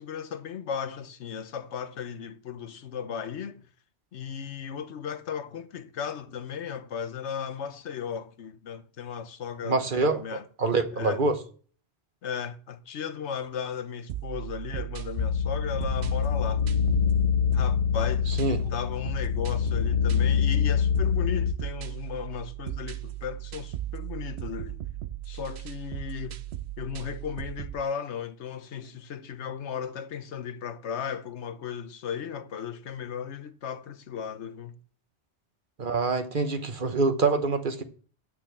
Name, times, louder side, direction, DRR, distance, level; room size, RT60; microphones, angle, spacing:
voice 1, 0.0-3.6 4.1-10.4 10.9-11.2 12.2-16.7 17.5-24.8 25.3-26.4 26.8-34.8, left 7 dB, 85° left, 1.1 m, -36 dB
voice 2, 9.6-10.2 10.6-11.4 18.4-18.6 35.8-37.8, right 3 dB, 50° right, 1.2 m, -25 dB
sound 1, 14.1-27.8, right 13 dB, 75° right, 0.9 m, -37 dB
sound 2, 15.2-21.5, left 8 dB, 50° left, 0.5 m, -25 dB
8.5 x 6.3 x 7.4 m
omnidirectional pair, 1.1 m